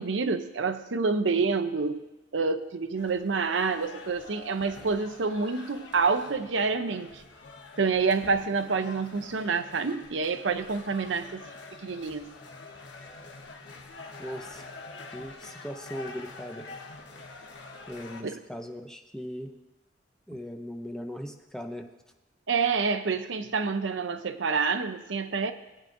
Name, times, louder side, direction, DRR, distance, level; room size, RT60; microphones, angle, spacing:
voice 1, 0.0-2.0 2.3-7.2 7.8-11.4 11.8-12.3 18.2-18.4 22.5-25.5, right 4 dB, 85° right, 9 dB, 0.7 m, -28 dB
sound 1, 3.0-18.2, left 3 dB, 75° left, 1.2 m, -46 dB
voice 2, 14.2-14.6 15.1-16.7 17.9-19.5 20.3-21.9, equal, 5° left, 4 dB, 0.6 m, -39 dB
19.0 x 8.9 x 2.6 m, 1.0 s
head